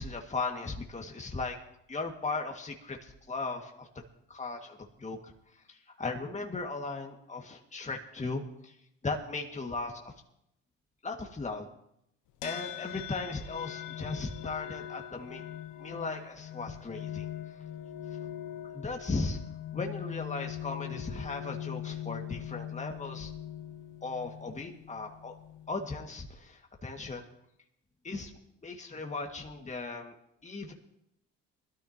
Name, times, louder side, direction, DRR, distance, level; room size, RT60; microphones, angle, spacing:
voice 1, 0.0-1.6 1.9-3.9 4.3-5.2 5.7-8.7 9.0-10.0 11.0-11.7 12.4-15.4 15.8-17.3 18.7-19.4 19.7-23.3 24.0-25.3 25.7-27.2 28.0-28.3 28.6-30.2 30.4-30.7, left 3 dB, 20° left, 2 dB, 2.0 m, -37 dB
sound 1, 12.4-25.9, left 11 dB, 70° left, 1.1 m, -41 dB
21.0 x 13.0 x 2.9 m, 0.78 s
hypercardioid pair, 60°, 32 cm